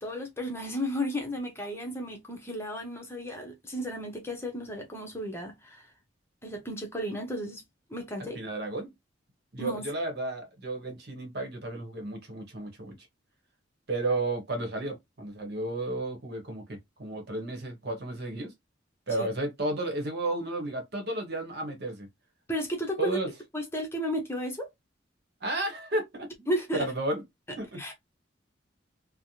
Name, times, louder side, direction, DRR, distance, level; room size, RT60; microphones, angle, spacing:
voice 1, 0.0-5.9 6.4-7.6 7.9-8.4 9.6-9.8 19.2-19.3 22.5-23.2 23.5-24.7 26.5-26.9 27.8-27.9, equal, 15° left, 0.8 m, -33 dB
voice 2, 8.3-8.9 9.5-12.9 13.9-18.5 19.1-22.1 23.0-23.3 25.4-27.2 27.6-27.8, right 2 dB, 60° right, 1.1 m, -33 dB
3.3 x 2.1 x 2.7 m
head